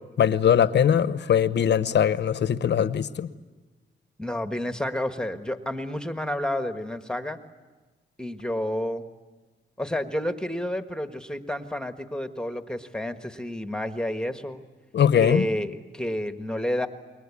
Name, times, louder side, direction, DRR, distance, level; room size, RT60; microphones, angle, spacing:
voice 1, 0.2-3.3 14.9-15.5, left 8 dB, 65° left, 13 dB, 1.0 m, -21 dB
voice 2, 4.2-7.4 8.2-9.0 9.8-14.6 15.2-16.9, left 1 dB, 5° left, 8 dB, 1.5 m, -30 dB
28.5 x 22.0 x 8.5 m, 1.2 s
cardioid pair, 90°, 19 cm